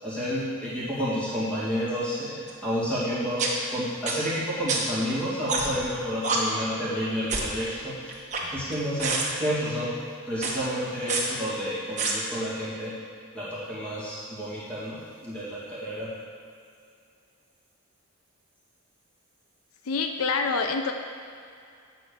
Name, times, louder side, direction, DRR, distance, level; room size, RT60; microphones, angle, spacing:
voice 1, 0.0-8.1 8.4-9.9 10.3-12.9 13.3-16.1, equal, 5° left, -10 dB, 2.1 m, -30 dB
sound 1, 2.5-2.6 3.4-3.5 4.1-4.2 4.7-4.8 5.5-5.8 6.2-6.4 7.3-7.5 8.1-8.7 9.0-9.3 10.3-10.5 11.1-11.2 12.0-12.1, right 4 dB, 35° right, 1.1 m, -27 dB
voice 2, 19.9-20.9, left 4 dB, 75° left, 5 dB, 0.5 m, -26 dB
8.7 x 4.4 x 6.6 m, 2.4 s
head